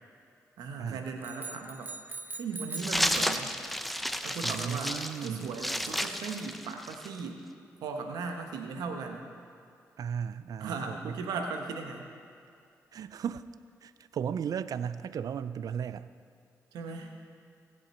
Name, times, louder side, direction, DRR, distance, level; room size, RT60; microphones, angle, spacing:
voice 1, 0.6-1.9 2.4-3.6 4.2-7.4 7.8-9.3 10.6-12.1 16.7-17.1, right 4 dB, 85° right, 4 dB, 1.1 m, -37 dB
sound 1, 1.2-3.0, right 3 dB, 30° right, 1.0 m, -41 dB
sound 2, 2.8-7.2, equal, ahead, 0.7 m, -32 dB
voice 2, 4.4-5.5 10.0-11.2 12.9-13.5 13.8-16.1, right 8 dB, 70° right, 15 dB, 0.4 m, -35 dB
18.0 x 7.7 x 4.4 m, 2.3 s
supercardioid pair, 50°, 7 cm